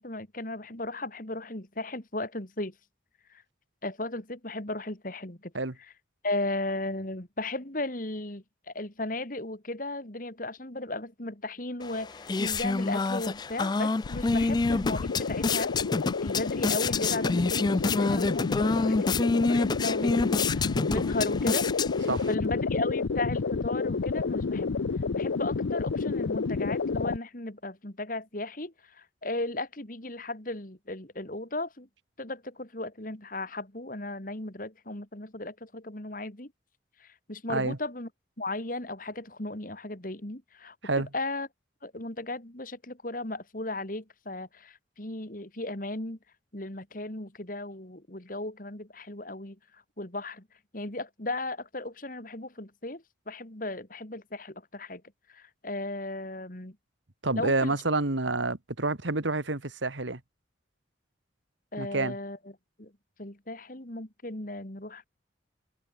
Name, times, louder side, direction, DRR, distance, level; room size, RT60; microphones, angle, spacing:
voice 1, 0.0-2.7 3.3-3.4 3.8-5.5 6.2-15.7 16.2-21.7 22.0-24.7 25.1-31.9 32.2-36.5 37.0-38.1 38.4-41.5 41.8-46.2 46.5-50.5 50.7-55.0 55.3-56.8 57.4-57.7 61.7-62.4 62.8-62.9 63.2-65.1, left 2 dB, 45° left, 2.6 m, -36 dB
sound 1, 11.8-22.3, left 3 dB, 20° left, 0.3 m, -28 dB
sound 2, 14.0-27.2, left 4 dB, 80° left, 0.6 m, -30 dB
voice 2, 57.2-60.2 61.8-62.2, right 2 dB, 75° right, 2.0 m, -28 dB
head